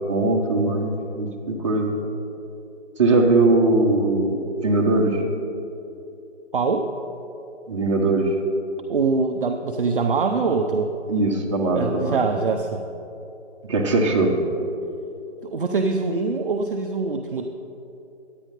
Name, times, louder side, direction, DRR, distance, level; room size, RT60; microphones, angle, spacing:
voice 1, 0.1-2.0 3.0-5.2 7.7-8.4 11.1-12.2 13.6-14.3, right 2 dB, 25° right, -1 dB, 0.8 m, -20 dB
voice 2, 6.5-6.9 8.9-10.9 11.7-12.8 15.4-17.5, right 4 dB, 50° right, 5 dB, 0.5 m, -23 dB
9.9 x 9.1 x 3.7 m, 2.8 s
figure-of-eight pair, 150°, 36 cm